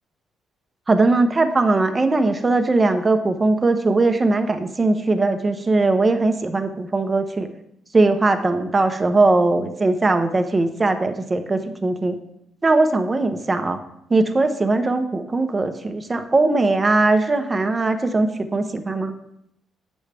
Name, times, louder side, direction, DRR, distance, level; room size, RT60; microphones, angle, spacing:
voice 1, 0.9-7.5 7.9-12.2 12.6-13.8 14.1-19.1, right 2 dB, 25° right, 7 dB, 0.8 m, -20 dB
8.2 x 6.2 x 3.4 m, 0.75 s
cardioid pair, 90°, 0 cm